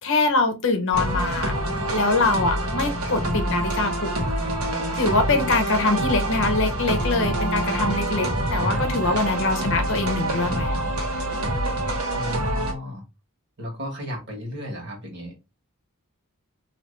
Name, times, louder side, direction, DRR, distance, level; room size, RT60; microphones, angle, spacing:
voice 1, 0.0-1.5 1.9-4.5 4.9-10.9, left 3 dB, 60° left, 0.7 m, -24 dB
sound 1, 0.9-12.7, right 1 dB, 85° right, 1.2 m, -26 dB
voice 2, 8.7-9.2 12.1-13.0 13.6-15.3, equal, 55° right, 1.5 m, -34 dB
3.1 x 2.8 x 3.1 m
head